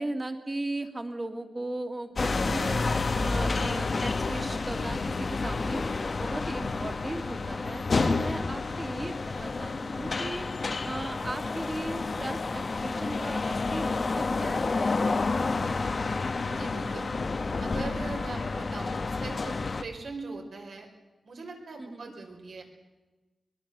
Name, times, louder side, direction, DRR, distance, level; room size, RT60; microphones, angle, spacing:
voice 1, 0.0-5.8 6.2-10.5 10.8-15.9 21.8-22.1, right 2 dB, 25° right, 5 dB, 2.2 m, -37 dB
sound 1, 2.2-19.8, left 3 dB, 40° left, 1.0 m, -30 dB
voice 2, 16.4-17.1 17.6-20.9 21.2-22.6, right 3 dB, 65° right, 2 dB, 4.4 m, -41 dB
23.5 x 21.5 x 6.8 m, 1.1 s
wide cardioid pair, 150°, 0 cm